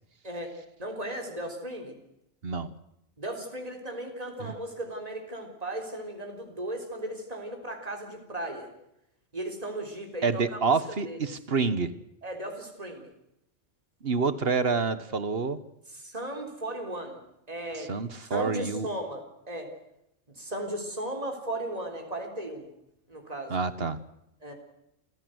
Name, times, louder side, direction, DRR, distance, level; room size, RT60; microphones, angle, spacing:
voice 1, 0.2-2.0 3.2-8.7 9.3-10.6 11.1-11.2 12.2-13.1 15.9-17.2 17.5-17.9 18.2-19.7 20.3-22.7 23.1-23.5 24.4-24.5, right 1 dB, 30° right, 3 dB, 3.9 m, -36 dB
voice 2, 10.2-11.9 14.0-15.6 17.8-18.9 23.5-24.0, right 4 dB, 55° right, 13 dB, 1.4 m, -27 dB
28.0 x 15.5 x 7.9 m, 0.82 s
omnidirectional pair, 1.3 m